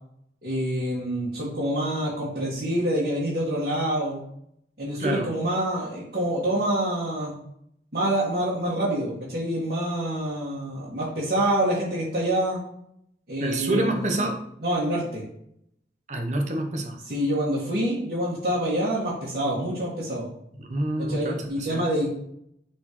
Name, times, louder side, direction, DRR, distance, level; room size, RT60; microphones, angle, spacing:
voice 1, 0.4-4.2 4.8-7.3 7.9-12.6 13.3-14.2 14.6-15.2 17.1-20.2 21.0-22.1, right 1 dB, 60° right, -10 dB, 1.9 m, -26 dB
voice 2, 13.4-14.4 16.1-17.0 20.6-21.8, right 1 dB, 40° right, 4 dB, 0.9 m, -27 dB
9.5 x 4.3 x 3.1 m, 0.72 s
head